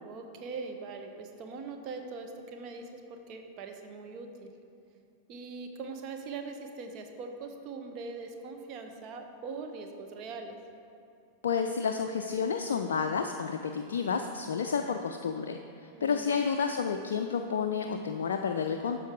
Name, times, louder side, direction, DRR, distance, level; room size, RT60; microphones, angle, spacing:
voice 1, 0.0-4.5 5.3-10.6 15.9-16.3, right 4 dB, 40° right, 4 dB, 0.8 m, -41 dB
voice 2, 11.4-19.0, left 6 dB, 65° left, 5 dB, 0.3 m, -30 dB
12.5 x 4.5 x 3.7 m, 2.6 s
figure-of-eight pair, 90°, 0 cm